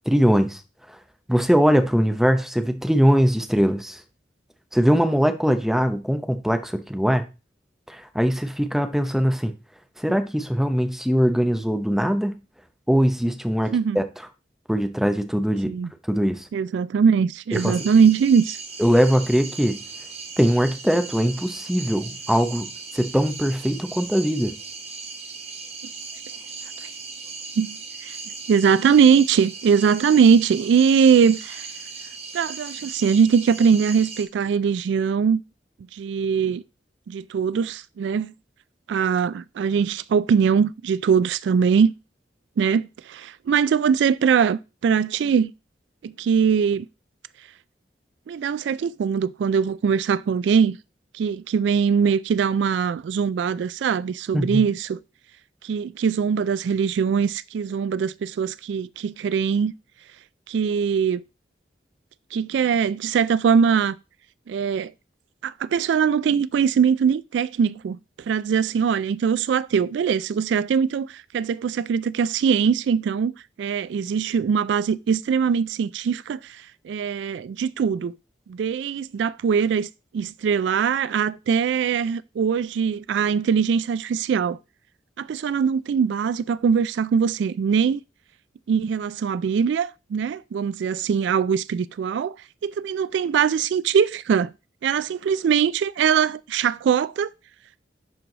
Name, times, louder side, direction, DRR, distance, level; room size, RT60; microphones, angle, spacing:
voice 1, 0.1-0.6 1.3-4.0 4.7-7.2 7.9-9.5 10.0-12.4 12.9-14.0 14.7-15.7 16.1-16.5 17.5-17.8 18.8-19.8 20.4-22.7 22.9-24.6 54.3-54.6, equal, ahead, 0.8 m, -21 dB
voice 2, 16.5-18.6 26.8-26.9 27.6-28.2 28.5-31.7 32.3-35.4 35.9-36.6 37.1-38.3 38.9-41.9 42.6-45.5 46.0-46.9 48.3-50.8 51.1-55.0 55.6-59.7 60.5-61.2 62.3-64.0 64.5-64.9 65.4-68.0 68.3-73.3 73.6-78.1 78.5-79.9 80.1-84.6 85.2-88.0 88.7-92.4 92.6-94.5 94.8-97.3, right 6 dB, 70° right, 0.3 m, -21 dB
sound 1, 17.5-34.2, right 4 dB, 35° right, 1.5 m, -38 dB
10.5 x 4.7 x 3.9 m
head